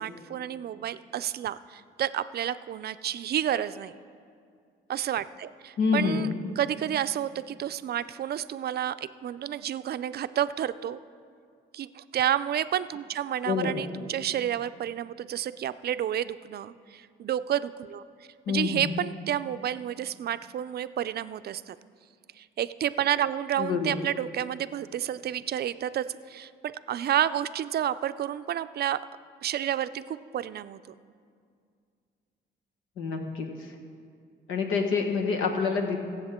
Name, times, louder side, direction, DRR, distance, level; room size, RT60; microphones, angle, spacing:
voice 1, 0.0-3.9 4.9-6.3 6.6-8.9 9.2-11.0 11.7-18.0 18.5-21.8 22.4-29.0 29.4-30.9, right 10 dB, 55° right, 13 dB, 0.4 m, -30 dB
voice 2, 5.8-6.3 13.4-13.8 18.5-18.8 23.6-24.0 33.0-33.5 34.5-36.0, left 5 dB, 90° left, 3 dB, 1.5 m, -27 dB
22.5 x 7.7 x 3.7 m, 2.2 s
cardioid pair, 90°, 20 cm